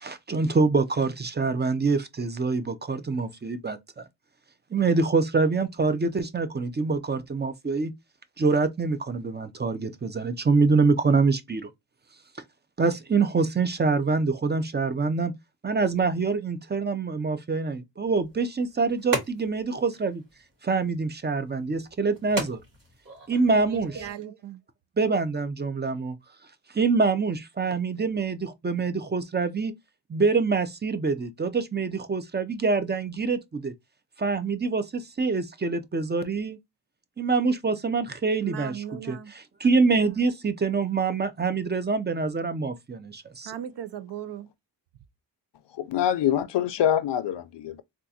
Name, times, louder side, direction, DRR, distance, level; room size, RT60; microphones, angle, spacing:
voice 1, 0.0-4.1 4.7-7.9 8.4-11.7 12.8-15.3 15.6-20.2 20.6-22.6 23.3-24.0 25.0-26.2 26.7-29.7 30.1-33.7 34.2-36.6 37.2-39.2 39.6-43.5, right 4 dB, 25° right, 0.5 m, -25 dB
sound 1, 18.0-24.1, right 1 dB, 50° right, 1.9 m, -38 dB
voice 2, 23.5-24.6 38.4-39.3 43.4-44.5, right 10 dB, 70° right, 0.6 m, -37 dB
voice 3, 45.8-47.8, left 10 dB, 75° left, 0.5 m, -25 dB
3.6 x 2.5 x 2.7 m
wide cardioid pair, 100°, 43 cm